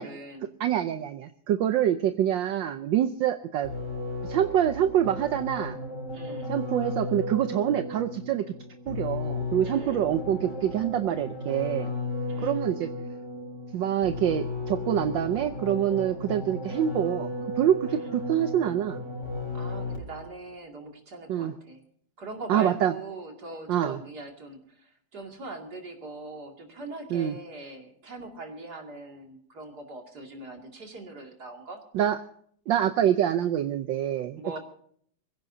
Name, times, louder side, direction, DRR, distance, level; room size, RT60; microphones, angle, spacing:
voice 1, 0.0-0.5 6.1-6.5 9.6-10.0 12.2-12.6 17.9-18.1 19.5-21.8 22.2-31.8 34.4-34.6, right 2 dB, 50° right, 3 dB, 3.0 m, -41 dB
voice 2, 0.6-3.7 4.2-5.8 6.5-8.5 8.9-11.9 12.4-12.9 13.7-19.0 21.3-21.5 22.5-22.9 23.7-24.0 27.1-27.3 31.9-32.2 32.7-34.4, right 10 dB, 70° right, 9 dB, 1.4 m, -26 dB
sound 1, 3.6-20.3, left 2 dB, 35° left, 3.7 m, -35 dB
24.5 x 16.0 x 2.7 m, 0.63 s
omnidirectional pair, 2.3 m